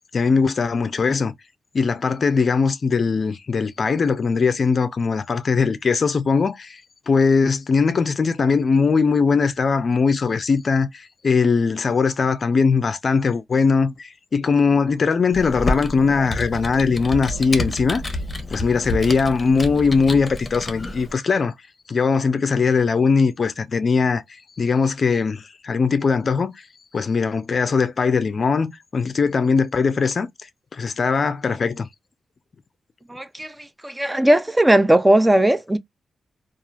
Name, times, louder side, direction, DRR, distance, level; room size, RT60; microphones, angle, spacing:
voice 1, 0.1-1.3 1.7-6.8 7.1-18.0 18.5-21.5 21.9-24.2 24.6-26.5 26.9-30.3 30.7-31.9, left 5 dB, 55° left, 0.4 m, -20 dB
Computer keyboard, 15.3-21.1, left 1 dB, 30° left, 0.8 m, -29 dB
voice 2, 33.1-33.5 33.8-35.8, right 1 dB, 15° right, 0.4 m, -17 dB
2.9 x 2.3 x 2.3 m
cardioid pair, 60°, 0 cm